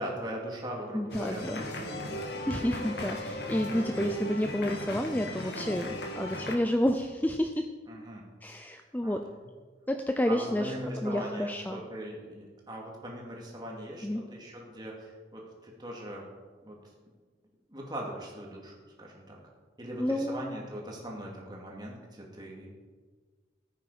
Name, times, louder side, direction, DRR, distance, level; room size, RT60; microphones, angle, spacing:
voice 1, 0.0-2.3 3.5-3.6 7.9-8.2 9.0-9.2 10.3-16.3 16.6-16.8 17.7-19.4 19.8-22.7, right 1 dB, 25° right, -2 dB, 2.6 m, -40 dB
voice 2, 0.9-1.6 2.5-7.7 8.4-9.2 9.9-10.7 11.0-11.8 14.0-14.2 20.0-20.6, left 1 dB, 10° left, 6 dB, 0.5 m, -30 dB
sound 1, 1.1-6.6, equal, 70° left, 1.8 m, -37 dB
15.5 x 8.8 x 5.0 m, 1.4 s
head